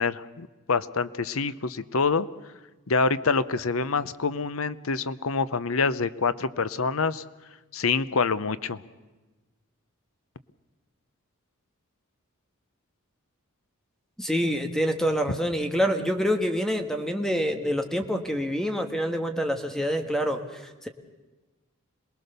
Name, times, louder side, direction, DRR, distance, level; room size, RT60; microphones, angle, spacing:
voice 1, 0.0-2.3 2.9-7.2 7.7-8.8, left 4 dB, 75° left, 15 dB, 0.8 m, -26 dB
voice 2, 14.2-20.9, equal, ahead, 5 dB, 1.4 m, -26 dB
27.0 x 20.0 x 6.8 m, 1.2 s
head